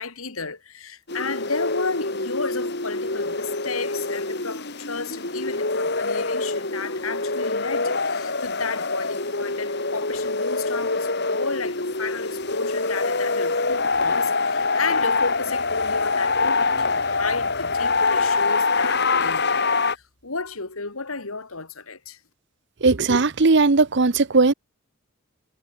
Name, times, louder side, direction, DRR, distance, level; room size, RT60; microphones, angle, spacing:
voice 1, 0.0-22.2, left 4 dB, 85° left, 2.8 m, -33 dB
sound 1, 1.1-19.9, left 3 dB, 55° left, 4.0 m, -25 dB
voice 2, 22.8-24.5, right 3 dB, 55° right, 0.9 m, -18 dB
head